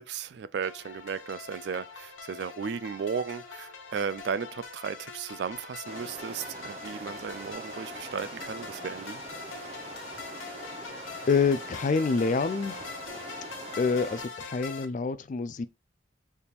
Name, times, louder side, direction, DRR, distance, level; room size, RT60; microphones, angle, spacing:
voice 1, 0.0-9.2, right 6 dB, 60° right, 0.3 m, -35 dB
sound 1, 0.6-14.8, left 5 dB, 90° left, 0.8 m, -43 dB
sound 2, 5.8-14.2, right 3 dB, 35° right, 0.7 m, -43 dB
voice 2, 11.3-13.0 13.8-15.7, left 4 dB, 40° left, 0.3 m, -27 dB
4.3 x 3.4 x 2.4 m
head